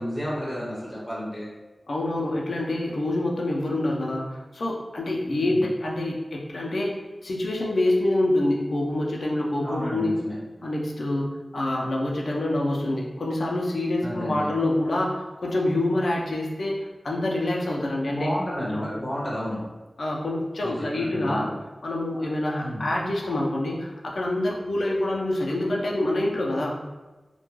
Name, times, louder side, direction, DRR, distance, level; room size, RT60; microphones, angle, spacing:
voice 1, 0.0-1.5 5.3-5.7 9.6-10.3 14.0-14.5 18.1-19.6 20.6-21.6 22.6-22.8, equal, 20° left, -6 dB, 0.6 m, -31 dB
voice 2, 1.9-10.1 10.6-16.8 17.0-18.3 18.7-18.8 20.0-21.5 21.8-26.8, left 1 dB, 85° left, -2 dB, 0.4 m, -26 dB
2.2 x 2.1 x 3.0 m, 1.2 s
wide cardioid pair, 70°, 0 cm